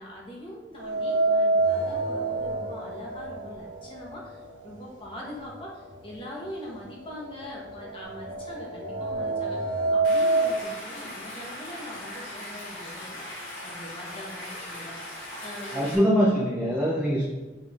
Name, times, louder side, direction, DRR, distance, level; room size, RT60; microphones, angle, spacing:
voice 1, 0.0-13.2 13.6-15.0 15.4-15.8, equal, 25° left, -3 dB, 1.3 m, -42 dB
sound 1, 0.8-4.9 5.2-5.3 6.3-6.4 6.8-10.6, right 2 dB, 70° right, 0.9 m, -27 dB
Stream, 10.0-16.0, left 1 dB, 85° left, 2.0 m, -39 dB
voice 2, 15.7-17.2, equal, 5° right, -5 dB, 0.7 m, -23 dB
8.1 x 3.5 x 3.6 m, 1.2 s
head